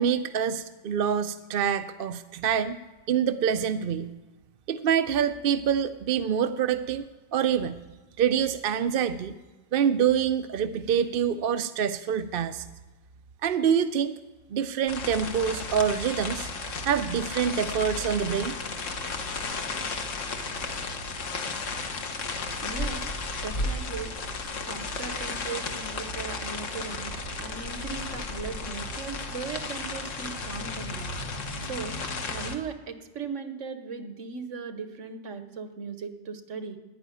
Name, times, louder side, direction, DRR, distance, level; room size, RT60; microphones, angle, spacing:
voice 1, 0.0-2.8 3.1-4.1 4.7-7.0 7.3-7.8 8.2-9.3 9.7-12.7 13.4-14.2 14.5-16.5 16.8-18.6, right 8 dB, 60° right, 11 dB, 0.7 m, -26 dB
sound 1, 14.9-32.6, left 3 dB, 85° left, 1.6 m, -34 dB
voice 2, 22.6-23.1 23.4-24.1 24.7-31.1 31.6-32.0 32.3-36.8, right 5 dB, 80° right, 9 dB, 1.5 m, -38 dB
11.0 x 10.5 x 9.3 m, 1.2 s
omnidirectional pair, 1.3 m